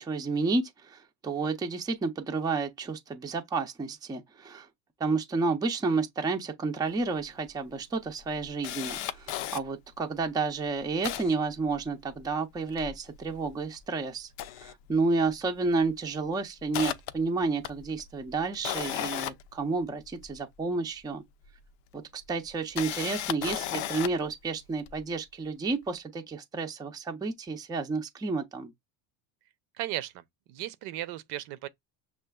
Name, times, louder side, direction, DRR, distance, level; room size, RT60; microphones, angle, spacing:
voice 1, 0.0-4.7 5.0-14.3 14.6-21.2 21.9-28.7, right 3 dB, 10° right, 0.5 m, -31 dB
Camera, 7.0-7.1 7.4-7.5 8.0-9.6 10.2-10.3 10.6-12.2 12.6-13.8 14.2-15.4 15.6-15.9 16.3-20.4 21.4-21.5 22.5-24.3 24.9-25.0, left 12 dB, 80° left, 0.6 m, -36 dB
voice 2, 29.8-30.2 30.5-31.7, right 14 dB, 65° right, 0.6 m, -35 dB
6.5 x 2.5 x 2.3 m
supercardioid pair, 125°, 40 cm